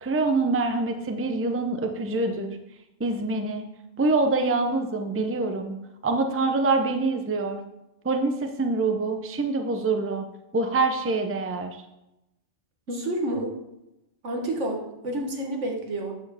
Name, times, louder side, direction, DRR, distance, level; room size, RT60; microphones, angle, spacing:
voice 1, 0.0-2.6 3.0-3.7 4.0-5.8 6.0-7.6 8.0-10.2 10.5-11.8, right 3 dB, 15° right, 6 dB, 0.6 m, -25 dB
voice 2, 12.9-13.5 14.2-16.1, right 1 dB, 75° right, 1 dB, 1.8 m, -29 dB
9.3 x 4.5 x 7.1 m, 0.93 s
omnidirectional pair, 1.2 m